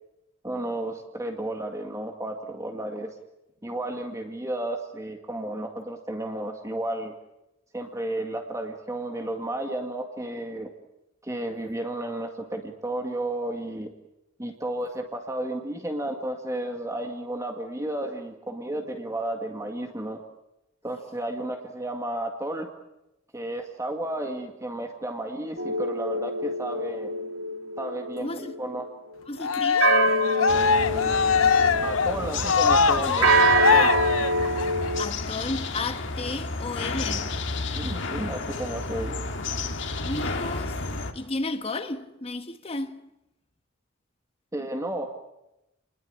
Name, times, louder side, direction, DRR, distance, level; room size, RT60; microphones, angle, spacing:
voice 1, 0.4-3.1 3.6-7.1 7.7-10.7 11.2-13.9 14.4-20.2 20.8-22.7 23.3-27.1 27.8-28.8 31.8-33.9 37.7-39.2 44.5-45.1, right 1 dB, 15° right, 2.0 m, -32 dB
sound 1, 25.6-28.8 29.8-32.2 33.2-35.1, right 1 dB, 80° right, 2.5 m, -25 dB
voice 2, 28.2-28.5 29.3-30.1 35.0-37.3 40.0-40.8 41.1-43.1, left 2 dB, 30° left, 1.4 m, -33 dB
Cheering, 29.4-34.9, left 5 dB, 90° left, 1.0 m, -22 dB
sound 2, 30.5-41.1, left 3 dB, 65° left, 2.2 m, -32 dB
29.5 x 21.0 x 8.8 m
head